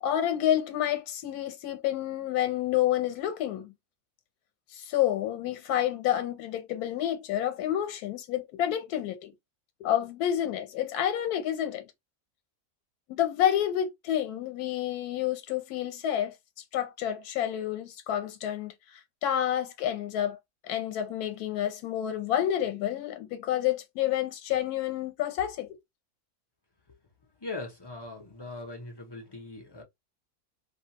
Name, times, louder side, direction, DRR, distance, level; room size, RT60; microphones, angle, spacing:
voice 1, 0.0-3.7 4.7-9.3 9.8-11.9 13.1-16.3 16.7-20.4 20.6-25.8, left 11 dB, 85° left, 1.2 m, -29 dB
voice 2, 27.4-29.8, left 2 dB, 30° left, 0.4 m, -40 dB
2.5 x 2.3 x 2.8 m
omnidirectional pair, 1.6 m